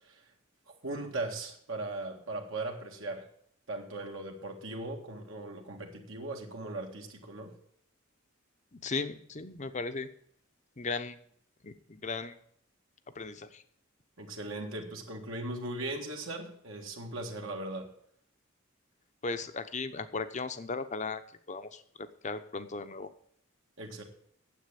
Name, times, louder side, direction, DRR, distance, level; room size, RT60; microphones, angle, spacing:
voice 1, 0.8-3.3 3.7-7.5 14.2-17.9 23.8-24.0, right 2 dB, 70° right, 1 dB, 1.9 m, -38 dB
voice 2, 8.7-10.1 10.8-11.2 11.6-12.3 13.1-13.6 19.2-21.2 21.5-23.1, left 4 dB, 35° left, 11 dB, 0.8 m, -36 dB
9.7 x 7.8 x 8.4 m, 0.65 s
head